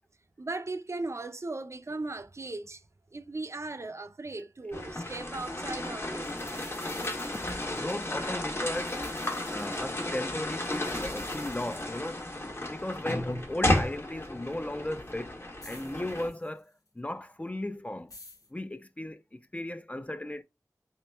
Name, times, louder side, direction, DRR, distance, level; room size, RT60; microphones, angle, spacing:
voice 1, 0.4-2.8 3.1-6.3, right 2 dB, 50° right, 0.4 m, -37 dB
sound 1, 4.7-16.3, left 1 dB, 40° left, 1.0 m, -33 dB
sound 2, 5.8-5.9 6.2-8.2 8.6-10.2 10.7-12.2 13.1-13.2 13.8-13.9 14.5-14.6 15.6-16.9 18.1-18.5, left 2 dB, 70° left, 1.2 m, -52 dB
voice 2, 7.7-9.0 9.5-12.2 12.7-15.4 15.6-18.1 18.5-20.4, left 1 dB, 20° left, 0.4 m, -36 dB
3.0 x 2.9 x 3.3 m
wide cardioid pair, 50°, 6 cm